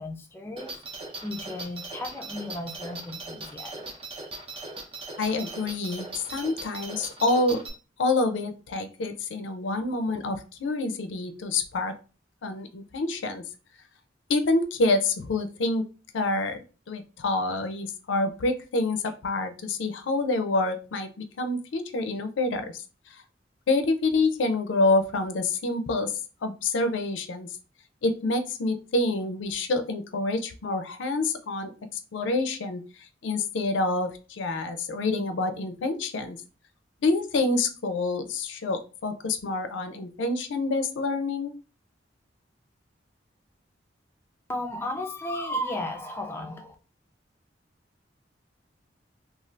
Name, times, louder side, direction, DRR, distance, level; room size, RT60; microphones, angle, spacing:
voice 1, 0.0-3.8 44.5-46.8, left 1 dB, 15° left, 3 dB, 0.4 m, -34 dB
sound 1, 0.6-7.7, right 3 dB, 30° right, 0.6 m, -39 dB
voice 2, 5.2-7.6 8.0-12.0 12.4-13.4 14.3-15.8 16.1-22.8 23.7-26.1 26.4-27.5 28.0-31.7 32.1-32.8 33.2-36.4 37.0-41.5, left 2 dB, 90° left, 9 dB, 0.5 m, -27 dB
2.6 x 2.4 x 3.2 m, 0.34 s
head